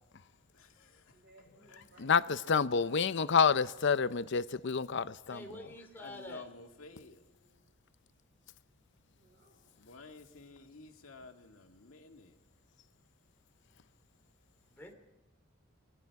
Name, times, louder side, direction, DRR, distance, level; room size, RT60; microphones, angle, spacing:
voice 1, 0.5-1.0 1.7-1.8 6.0-7.2 9.8-12.3, left 3 dB, 85° left, 2.1 m, -52 dB
voice 2, 1.1-3.4 4.5-4.6 6.8-7.7 9.2-9.9, right 1 dB, 55° right, 7.2 m, -62 dB
voice 3, 2.0-5.4, left 6 dB, 60° left, 0.6 m, -28 dB
voice 4, 5.3-6.5 14.7-14.9, left 1 dB, 10° left, 3.3 m, -47 dB
27.5 x 21.0 x 4.7 m
head